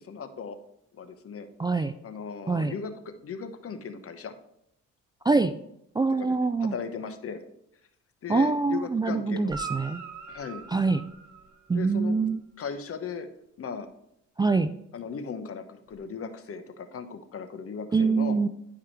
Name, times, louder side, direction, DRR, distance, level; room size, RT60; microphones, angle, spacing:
voice 1, 0.1-0.6 0.9-1.5 1.8-4.3 6.2-6.3 6.6-7.4 8.2-9.5 10.3-10.6 11.7-12.1 12.6-13.3 13.6-13.9 14.9-18.4, left 6 dB, 50° left, 9 dB, 1.0 m, -37 dB
voice 2, 1.6-1.9 2.5-2.7 5.2-5.5 6.0-6.7 8.3-10.0 10.7-11.0 11.7-12.4 14.4-14.7 17.9-18.5, right 4 dB, 15° right, 11 dB, 0.3 m, -24 dB
Guitar, 9.4-12.0 15.9-16.0, right 5 dB, 70° right, 1.6 m, -41 dB
10.0 x 4.8 x 4.6 m, 0.76 s
cardioid pair, 90°, 30 cm